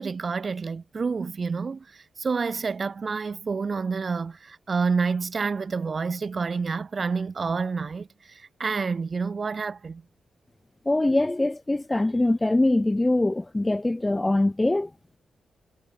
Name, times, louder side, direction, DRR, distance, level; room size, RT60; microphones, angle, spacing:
voice 1, 0.0-10.0, right 5 dB, 50° right, 3.6 m, -28 dB
voice 2, 10.9-14.9, left 2 dB, 20° left, 0.8 m, -23 dB
supercardioid pair, 45°, 0 cm